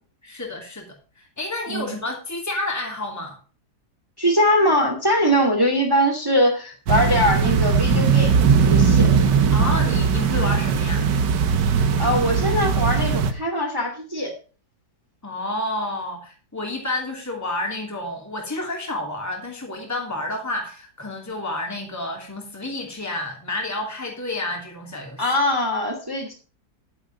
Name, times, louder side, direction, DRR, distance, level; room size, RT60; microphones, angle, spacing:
voice 1, 0.2-0.9 1.2-3.4 9.5-11.0 15.2-25.2, left 2 dB, 10° left, 1 dB, 2.8 m, -30 dB
voice 2, 4.2-9.1 12.0-14.3 25.2-26.3, equal, 15° right, 2 dB, 2.4 m, -22 dB
sound 1, 6.9-13.3, right 6 dB, 90° right, 1.8 m, -19 dB
11.0 x 9.9 x 3.9 m, 0.35 s
omnidirectional pair, 1.8 m